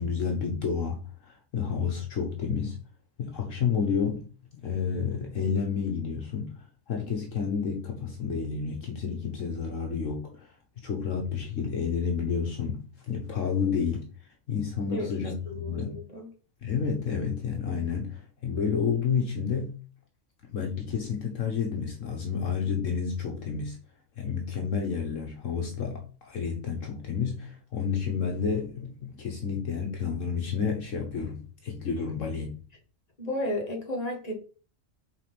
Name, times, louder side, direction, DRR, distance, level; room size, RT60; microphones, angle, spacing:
voice 1, 0.0-2.8 3.2-4.2 4.5-14.1 14.5-16.0 16.6-19.8 20.4-23.8 24.2-32.5, left 6 dB, 65° left, 1.4 m, -30 dB
voice 2, 15.5-16.3 33.2-34.3, left 1 dB, 30° left, 2.1 m, -33 dB
5.0 x 4.2 x 5.8 m
omnidirectional pair, 1.4 m